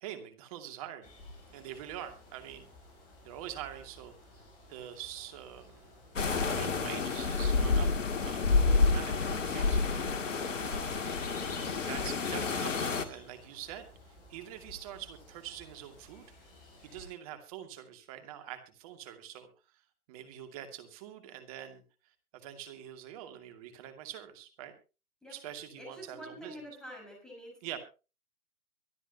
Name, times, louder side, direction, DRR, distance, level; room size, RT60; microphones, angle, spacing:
voice 1, 0.0-1.1 1.5-2.7 3.2-4.1 4.7-6.1 6.5-7.9 8.2-9.9 10.6-11.1 11.9-16.3 16.8-19.5 20.1-21.8 22.3-24.7 25.3-26.6 27.6-27.8, right 11 dB, 25° right, 7 dB, 2.5 m, -45 dB
sound 1, 1.0-17.1, left 2 dB, 25° left, 8.0 m, -54 dB
sound 2, 6.2-13.1, left 4 dB, 55° left, 2.3 m, -29 dB
voice 2, 25.7-27.6, equal, ahead, -1 dB, 5.6 m, -47 dB
24.0 x 11.0 x 2.9 m, 0.32 s
figure-of-eight pair, 140°, 44 cm